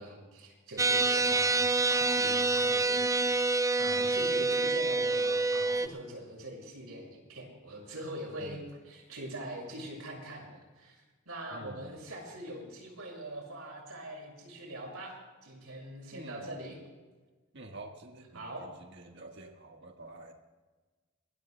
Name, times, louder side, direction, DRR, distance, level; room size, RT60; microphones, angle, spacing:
voice 1, 0.0-3.5 3.8-11.0 11.3-16.8 18.3-18.6, right 1 dB, 85° right, -1 dB, 6.2 m, -43 dB
sound 1, 0.8-5.9, right 3 dB, 15° right, 0.4 m, -27 dB
voice 2, 11.5-12.0 16.1-16.8 17.5-20.3, right 2 dB, 55° right, 2 dB, 1.5 m, -48 dB
25.5 x 20.5 x 2.3 m, 1.3 s
head